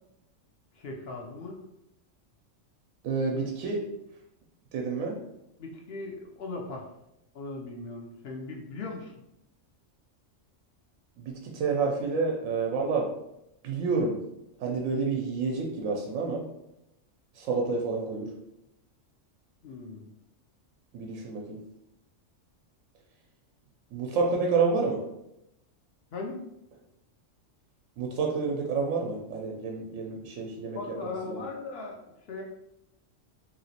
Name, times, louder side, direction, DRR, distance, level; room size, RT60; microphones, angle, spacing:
voice 1, 0.7-1.6 5.6-6.9 7.3-9.1 19.6-20.1 26.1-26.4 30.7-32.0 32.3-32.4, left 3 dB, 65° left, 0 dB, 0.7 m, -38 dB
voice 2, 3.0-3.8 4.7-5.2 11.2-13.1 13.6-14.2 14.6-16.4 17.3-18.3 20.9-21.6 23.9-25.0 28.0-31.0 31.2-31.4, right 4 dB, 90° right, 0 dB, 1.0 m, -29 dB
3.0 x 2.8 x 2.8 m, 0.84 s
omnidirectional pair, 1.3 m